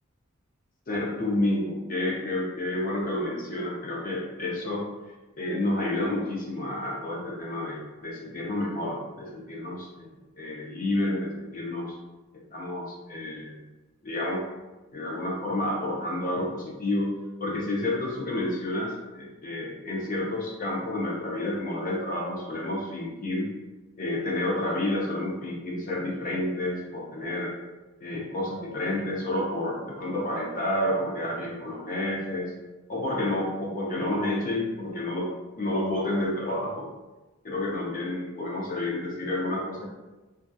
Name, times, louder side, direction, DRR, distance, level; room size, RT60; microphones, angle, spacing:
voice 1, 0.9-4.9 5.4-10.1 10.4-12.0 12.5-13.6 14.0-14.4 14.9-17.1 17.4-23.5 24.0-27.5 28.0-32.5 32.9-35.3 35.6-36.9 37.4-39.9, left 1 dB, 40° left, -3 dB, 0.5 m, -30 dB
2.6 x 2.2 x 2.2 m, 1.1 s
head